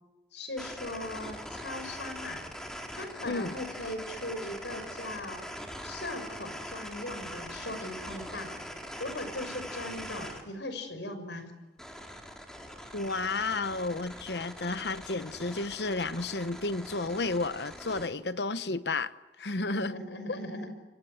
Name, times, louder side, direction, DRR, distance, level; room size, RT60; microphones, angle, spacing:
voice 1, 0.3-2.5 3.0-5.4 5.8-8.6 9.0-11.5 19.7-20.7, left 1 dB, 80° left, 6.1 m, -39 dB
sound 1, 0.6-10.4 11.8-18.1, equal, 5° left, 4.0 m, -42 dB
voice 2, 3.2-3.5 12.9-19.1 19.4-19.9 20.3-20.4, left 3 dB, 65° left, 1.0 m, -32 dB
29.5 x 25.0 x 8.0 m
head